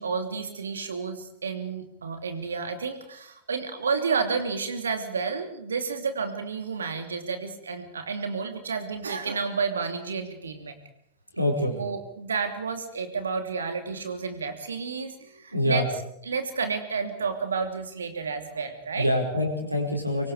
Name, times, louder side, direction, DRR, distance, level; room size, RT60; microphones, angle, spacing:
voice 1, 0.0-10.8 11.7-15.9 16.2-19.1, right 5 dB, 70° right, 7 dB, 2.9 m, -31 dB
voice 2, 11.4-11.7 15.5-15.8 19.0-20.3, left 1 dB, 85° right, 3 dB, 5.3 m, -25 dB
24.5 x 24.5 x 5.0 m, 0.72 s
figure-of-eight pair, 90°, 0 cm